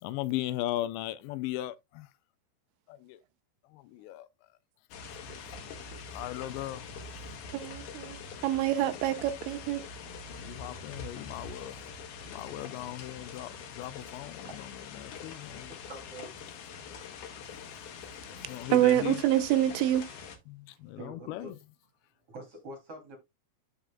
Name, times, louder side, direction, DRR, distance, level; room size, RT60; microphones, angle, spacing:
voice 1, 0.0-2.1 2.9-3.2 3.7-4.3 6.1-6.9 10.4-11.8 12.2-14.5 15.0-15.7 18.3-19.2 20.5-21.5, left 15 dB, 85° left, 2.7 m, -37 dB
sound 1, 4.9-20.4, left 5 dB, 65° left, 2.2 m, -44 dB
voice 2, 7.5-8.2 8.4-9.8 18.7-20.1, right 13 dB, 90° right, 2.9 m, -26 dB
voice 3, 15.9-16.4 18.1-18.4 20.8-21.6 22.3-23.2, right 1 dB, 35° right, 3.3 m, -46 dB
13.0 x 5.0 x 2.2 m
omnidirectional pair, 5.1 m